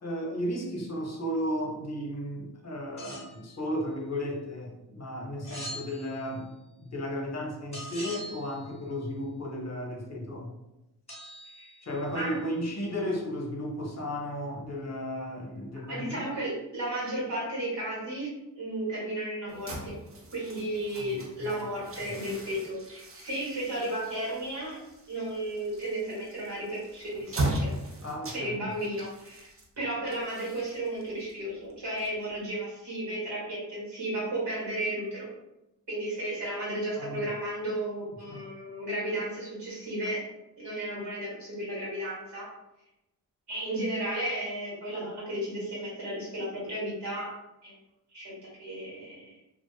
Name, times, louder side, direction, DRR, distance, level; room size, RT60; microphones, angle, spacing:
voice 1, 0.0-6.5 6.8-10.5 11.8-16.2 21.0-21.6 22.0-22.1 28.0-28.7 37.0-37.2 38.3-38.4, equal, 40° left, 0 dB, 0.7 m, -34 dB
sound 1, 3.0-3.4 5.4-6.4 7.7-8.8 11.1-12.2, equal, 15° left, 1.1 m, -43 dB
voice 2, 15.9-20.0 20.3-24.8 25.1-27.7 28.3-35.3 35.9-40.2 40.6-42.5 43.5-47.3 47.6-47.8 48.1-49.3, right 1 dB, 75° right, -6 dB, 1.3 m, -34 dB
sound 2, 19.5-32.6, right 1 dB, 30° right, 0.5 m, -39 dB
2.4 x 2.3 x 2.3 m, 0.93 s
cardioid pair, 45°, 43 cm